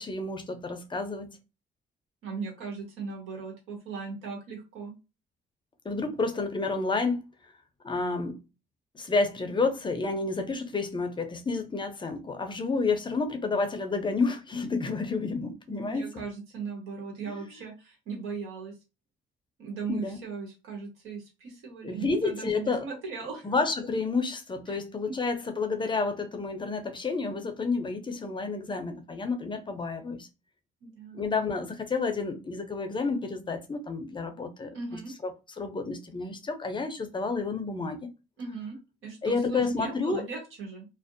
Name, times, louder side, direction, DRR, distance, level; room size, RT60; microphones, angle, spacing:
voice 1, 0.0-1.4 5.8-7.2 7.8-8.4 8.9-16.2 17.3-17.4 19.9-20.2 21.8-22.9 23.4-30.3 31.1-35.3 35.6-38.0 39.2-40.3, left 4 dB, 25° left, 0.5 m, -30 dB
voice 2, 2.2-4.9 15.7-18.8 19.6-23.5 24.7-24.8 25.0-25.2 30.8-31.2 34.7-35.1 38.4-38.8 39.0-40.9, right 5 dB, 90° right, 1.1 m, -38 dB
2.5 x 2.0 x 2.5 m
cardioid pair, 90°, 20 cm